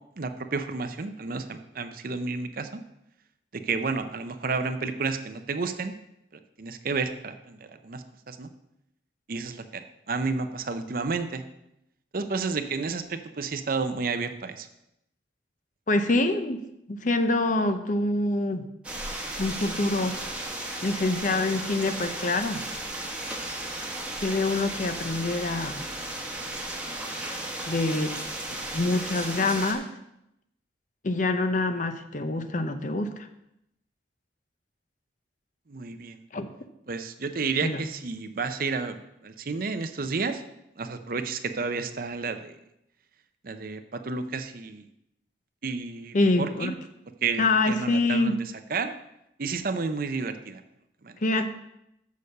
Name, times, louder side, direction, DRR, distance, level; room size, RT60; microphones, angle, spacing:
voice 1, 0.2-2.8 3.5-5.9 6.3-8.5 9.3-9.8 10.1-11.4 12.1-14.7 35.7-36.2 36.9-40.4 40.8-42.6 43.4-44.8 45.6-46.7 47.2-48.4 48.7-48.9 49.4-50.6 51.0-51.2, right 4 dB, 50° right, 9 dB, 0.6 m, -31 dB
voice 2, 15.9-16.6 16.9-18.7 19.4-20.2 20.8-22.6 24.2-25.8 27.7-28.2 28.5-29.8 31.0-33.3 36.3-36.5 37.6-37.8 46.1-46.7 47.4-48.4 51.2-51.5, left 2 dB, 45° left, 8 dB, 0.7 m, -25 dB
sound 1, 18.8-29.7, right 1 dB, 5° right, 1.2 m, -35 dB
6.9 x 6.6 x 6.6 m, 0.83 s
head